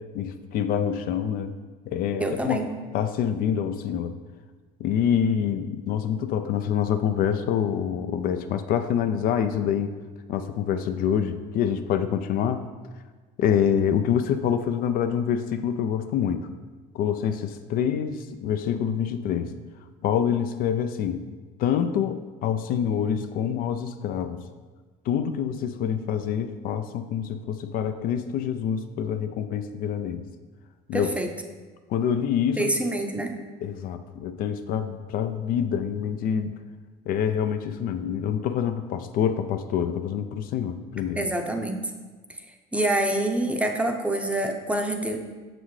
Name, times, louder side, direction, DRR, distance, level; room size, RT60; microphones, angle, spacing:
voice 1, 0.0-1.5 1.9-2.6 2.9-4.2 4.8-9.9 10.3-12.7 13.4-16.5 16.9-19.5 20.0-21.2 21.6-24.4 25.1-30.3 30.9-31.1 31.9-32.7 33.6-36.5 37.1-41.3, left 8 dB, 55° left, 9 dB, 0.4 m, -26 dB
voice 2, 2.2-2.7 30.9-31.3 32.6-33.3 41.2-41.8 42.7-45.2, right 1 dB, 5° right, 3 dB, 0.6 m, -26 dB
6.3 x 5.9 x 3.2 m, 1.4 s
supercardioid pair, 105°, 17 cm